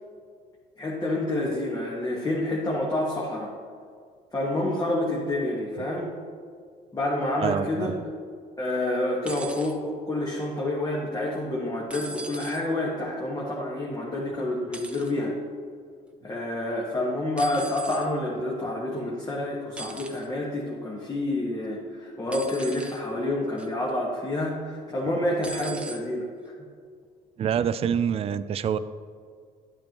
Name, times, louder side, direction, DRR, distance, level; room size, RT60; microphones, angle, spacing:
voice 1, 0.8-3.5 4.3-6.1 6.9-7.9 8.6-15.4 16.2-26.5, left 1 dB, 20° left, -5 dB, 1.5 m, -28 dB
voice 2, 7.4-7.9 27.4-28.8, right 8 dB, 35° right, 13 dB, 0.4 m, -26 dB
sound 1, 9.2-9.7 11.9-12.6 14.7-15.1 17.4-18.1 19.8-20.3 22.3-23.0 23.6-23.9 25.4-26.0 27.0-27.1, right 2 dB, 5° right, 0.9 m, -39 dB
10.5 x 8.6 x 3.0 m, 2.1 s
cardioid pair, 110°, 17 cm